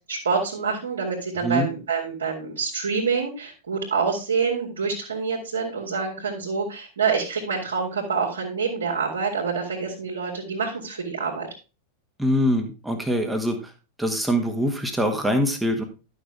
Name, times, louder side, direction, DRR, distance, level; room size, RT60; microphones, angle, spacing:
voice 1, 0.1-11.5, right 5 dB, 70° right, -2 dB, 2.3 m, -26 dB
voice 2, 12.2-13.6 14.0-15.8, equal, 5° right, 4 dB, 1.6 m, -23 dB
11.0 x 6.5 x 3.5 m, 0.32 s
figure-of-eight pair, 90°, 0 cm